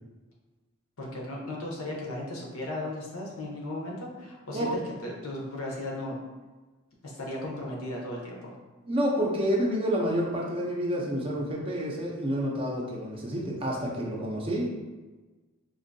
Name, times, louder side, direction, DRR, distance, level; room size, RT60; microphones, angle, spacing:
voice 1, 1.0-6.2 7.0-8.5, left 1 dB, 70° left, -2 dB, 0.8 m, -36 dB
voice 2, 8.9-14.7, equal, 25° right, -2 dB, 0.5 m, -29 dB
3.7 x 2.6 x 2.6 m, 1.3 s
head